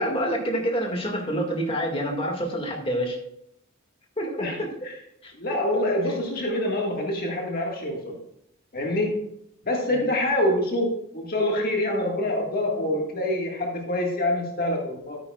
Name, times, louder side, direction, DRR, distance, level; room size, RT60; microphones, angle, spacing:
voice 1, 0.0-3.2 4.2-4.5 5.2-5.3 9.9-10.1, equal, 25° left, 1 dB, 1.9 m, -27 dB
voice 2, 5.4-8.2 8.7-9.3 9.6-15.2, left 1 dB, 45° left, 0 dB, 1.7 m, -26 dB
13.5 x 9.4 x 2.4 m, 0.75 s
head